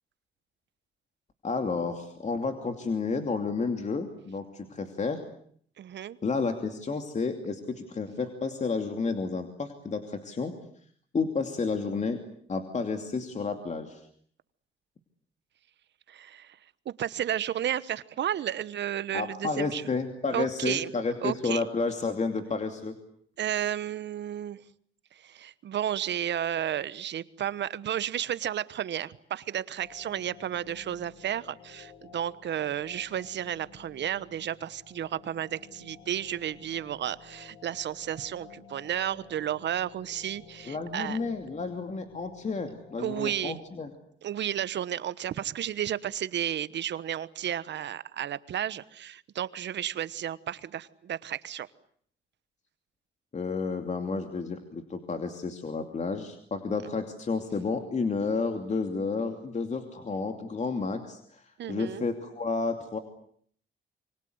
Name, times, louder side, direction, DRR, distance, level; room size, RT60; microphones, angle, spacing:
voice 1, 1.4-5.2 6.2-10.5 11.1-12.2 12.5-14.0 19.1-23.0 40.7-43.9 53.3-63.0, left 4 dB, 35° left, 6 dB, 2.7 m, -31 dB
voice 2, 5.8-6.2 16.1-16.6 16.8-19.8 20.3-20.9 21.2-21.6 23.4-24.6 25.1-41.2 43.0-43.6 44.2-51.7 61.6-62.0, right 10 dB, 65° right, 16 dB, 1.2 m, -32 dB
sound 1, 29.8-43.5, left 6 dB, 85° left, 3.8 m, -53 dB
27.0 x 24.5 x 8.0 m, 0.62 s
cardioid pair, 90°, 20 cm